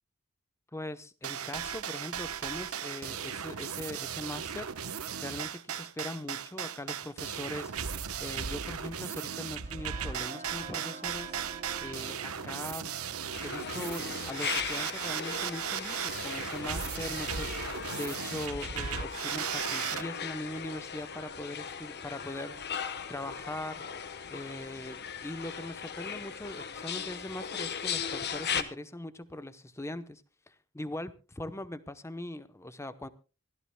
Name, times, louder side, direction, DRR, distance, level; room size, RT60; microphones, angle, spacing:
voice 1, 0.7-7.7 8.2-11.4 11.8-12.9 13.4-23.9 24.3-33.1, left 1 dB, 15° left, 0.8 m, -41 dB
sound 1, 1.2-20.0, right 8 dB, 90° right, 1.0 m, -36 dB
sound 2, 9.2-17.1, right 3 dB, 35° right, 1.3 m, -51 dB
sound 3, 13.3-28.6, left 7 dB, 50° left, 1.1 m, -38 dB
25.0 x 15.5 x 2.2 m
head